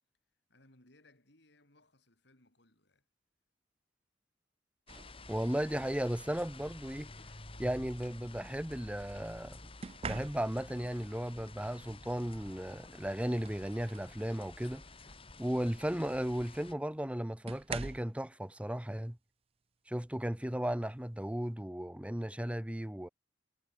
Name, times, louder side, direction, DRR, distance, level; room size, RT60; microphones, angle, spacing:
voice 1, 0.5-3.1, left 1 dB, 65° left, 7.0 m, -65 dB
sound 1, 4.9-16.7, left 2 dB, 30° left, 3.1 m, -51 dB
sound 2, 4.9-5.2 6.5-6.7 9.8-10.8 12.5-12.6 13.1-14.2 14.7-14.9 16.3-16.4 17.5-18.2 19.9-20.1 20.6-20.9, right 5 dB, 30° right, 0.4 m, -44 dB
voice 2, 5.3-7.1 7.6-9.7 10.0-14.8 15.4-19.2 19.9-23.1, equal, 5° right, 0.9 m, -35 dB
head